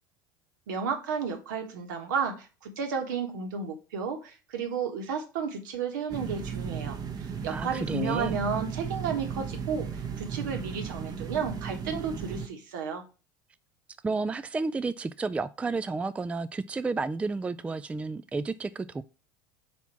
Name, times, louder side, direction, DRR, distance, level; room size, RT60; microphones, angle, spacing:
voice 1, 0.7-7.0 7.4-13.0, right 5 dB, 70° right, 1.5 m, -32 dB
sound 1, 6.1-12.5, right 6 dB, 35° right, 1.1 m, -35 dB
voice 2, 7.5-8.4 14.0-19.0, right 3 dB, 10° right, 0.3 m, -31 dB
4.5 x 4.2 x 5.8 m
hypercardioid pair, 75°, 11 cm